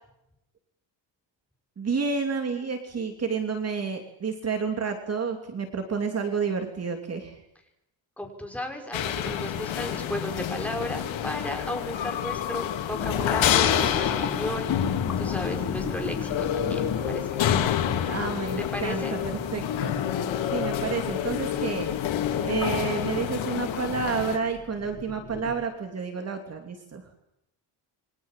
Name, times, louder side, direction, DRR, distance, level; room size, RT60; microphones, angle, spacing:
voice 1, 1.8-7.4 18.1-20.0 20.5-21.9 22.4-27.0, right 5 dB, 35° right, 5 dB, 3.0 m, -30 dB
voice 2, 8.2-18.0 18.6-19.4, left 1 dB, 5° left, 3 dB, 5.7 m, -35 dB
sound 1, 8.9-24.4, left 10 dB, 90° left, 3.8 m, -28 dB
sound 2, 12.9-17.2 17.8-19.1 19.5-25.6, left 5 dB, 35° left, 5.0 m, -37 dB
29.0 x 24.0 x 7.5 m, 0.84 s
cardioid pair, 165°, 45 cm